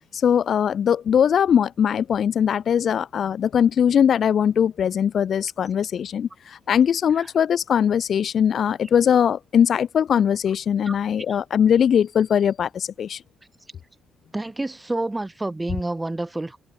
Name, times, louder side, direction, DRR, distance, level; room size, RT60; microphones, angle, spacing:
voice 1, 0.1-13.2, left 8 dB, 60° left, 1.1 m, -20 dB
voice 2, 14.3-16.6, right 2 dB, 15° right, 7.5 m, -28 dB
cardioid pair, 90°, 0 cm